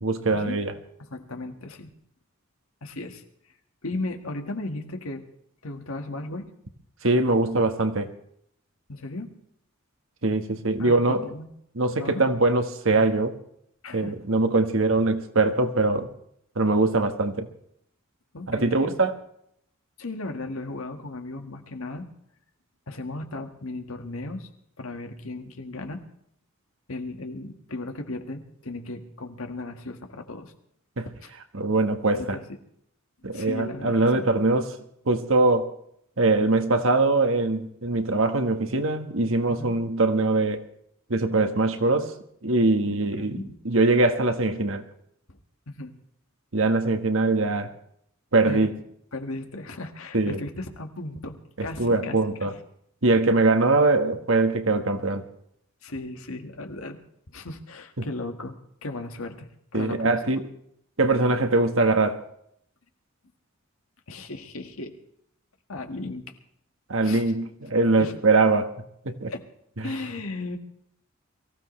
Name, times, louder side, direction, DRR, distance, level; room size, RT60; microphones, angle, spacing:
voice 1, 0.0-0.7 7.0-8.1 10.2-11.3 11.7-13.4 13.9-16.1 16.5-17.5 18.5-19.1 31.0-31.1 31.5-32.4 33.2-34.7 35.1-35.7 36.2-40.6 41.1-42.1 42.4-43.4 43.6-44.8 46.5-47.7 48.3-48.7 50.1-50.4 51.6-52.5 53.0-55.3 58.0-58.1 59.7-60.4 61.0-62.2 66.9-68.7 69.0-69.3, right 2 dB, 70° right, 1.4 m, -22 dB
voice 2, 1.0-1.9 2.8-3.2 3.8-5.2 5.6-6.5 8.9-9.3 10.8-11.5 12.0-12.3 13.8-14.1 18.3-18.9 20.0-22.1 22.9-24.5 24.8-26.0 26.9-30.5 31.1-31.3 32.1-32.6 33.3-34.3 39.5-39.8 42.8-43.6 45.7-45.9 48.4-48.7 49.1-52.5 55.8-57.0 57.3-58.6 58.8-60.4 64.1-64.9 65.7-66.3 67.0-67.2 68.0-68.1 69.3-69.4 69.8-70.6, left 2 dB, 85° left, 1.8 m, -36 dB
23.5 x 15.5 x 3.2 m
head